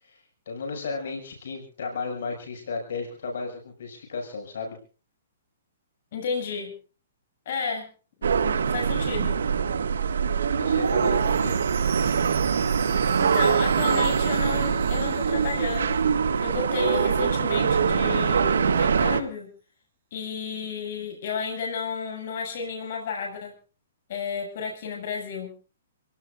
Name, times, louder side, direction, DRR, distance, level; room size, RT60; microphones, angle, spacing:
voice 1, 0.5-4.8 10.4-11.6, left 4 dB, 70° left, 2 dB, 6.2 m, -34 dB
voice 2, 6.1-6.7 7.5-7.9 8.2-9.4 13.2-16.0 16.4-19.5 20.1-23.5 24.1-25.5, left 5 dB, 50° left, 1 dB, 7.0 m, -32 dB
sound 1, 8.2-19.2, right 6 dB, 90° right, 1.8 m, -23 dB
Chime, 10.8-16.7 17.1-17.2 17.7-17.8, right 8 dB, 40° right, 6.2 m, -42 dB
28.0 x 18.0 x 2.5 m, 0.37 s
hypercardioid pair, 160°, 0 cm